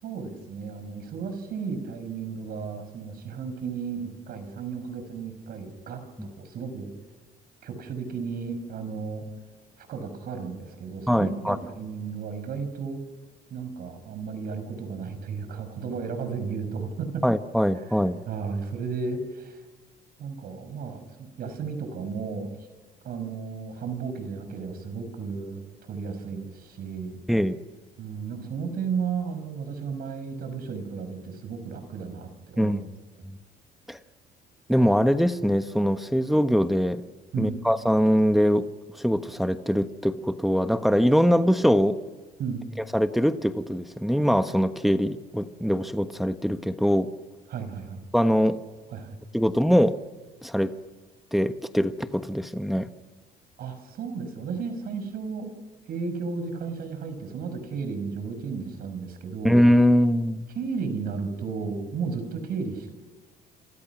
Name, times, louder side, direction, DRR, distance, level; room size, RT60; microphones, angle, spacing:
voice 1, 0.0-6.9 7.6-9.2 9.8-13.0 13.5-17.2 18.3-19.6 20.2-22.5 23.0-27.2 28.0-32.8 37.3-37.7 42.4-42.7 47.5-48.0 48.9-49.2 53.6-55.5 55.9-59.6 60.5-62.9, right 5 dB, 65° right, 9 dB, 6.0 m, -34 dB
voice 2, 11.1-11.6 17.2-18.2 27.3-27.6 32.6-32.8 33.9-34.0 34.7-37.0 37.4-38.7 39.0-42.0 42.9-47.1 48.1-48.6 49.3-50.0 50.4-50.7 51.3-52.9 59.4-60.5, equal, ahead, 9 dB, 1.2 m, -22 dB
30.0 x 27.0 x 6.1 m, 1.4 s
cardioid pair, 110°, 17 cm